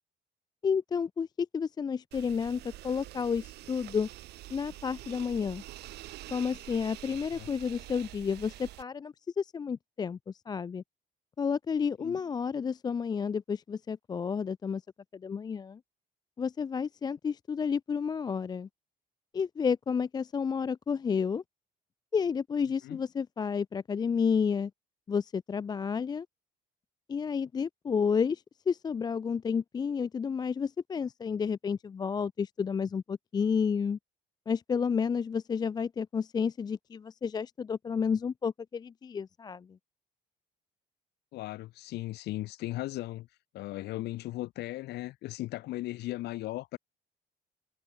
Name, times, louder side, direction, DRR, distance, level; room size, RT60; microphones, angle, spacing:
voice 1, 0.6-4.1 4.5-5.6 6.3-10.8 11.4-14.8 15.1-15.8 16.4-18.7 19.3-21.4 22.1-24.7 25.1-26.3 27.1-34.0 34.5-39.8, left 6 dB, 25° left, 0.4 m, -31 dB
sound 1, 2.1-8.8, right 16 dB, 80° right, 2.9 m, -46 dB
voice 2, 41.3-43.3 43.5-46.8, left 17 dB, 80° left, 1.4 m, -37 dB
cardioid pair, 110°, 17 cm